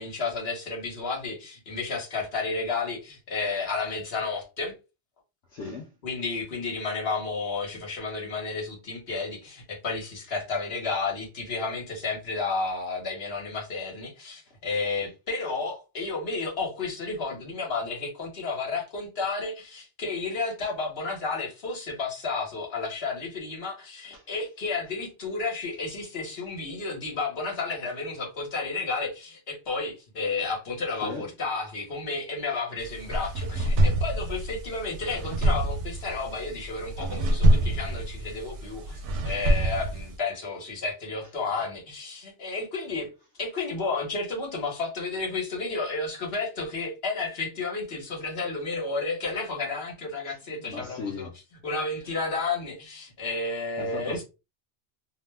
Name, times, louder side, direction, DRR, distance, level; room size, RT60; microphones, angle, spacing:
voice 1, 0.0-4.7 6.0-43.1 43.4-51.3 51.6-54.2, left 3 dB, 65° left, 1.3 m, -32 dB
voice 2, 5.5-5.9 24.1-24.2 31.0-31.3 50.3-50.4 50.7-51.4 53.8-54.2, left 3 dB, 80° left, 0.9 m, -36 dB
sound 1, 32.8-40.2, right 1 dB, 80° right, 0.9 m, -26 dB
2.7 x 2.1 x 3.3 m
omnidirectional pair, 1.2 m